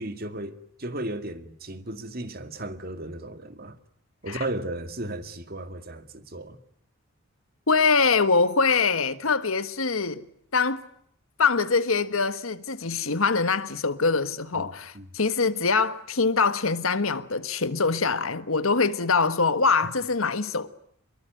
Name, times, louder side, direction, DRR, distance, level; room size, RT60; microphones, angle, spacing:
voice 1, 0.0-3.8 4.2-6.6 14.5-15.1, right 1 dB, 45° right, 2.2 m, -35 dB
voice 2, 7.7-10.2 10.5-10.8 11.4-20.7, left 4 dB, 80° left, 1.5 m, -24 dB
26.5 x 22.5 x 9.3 m
head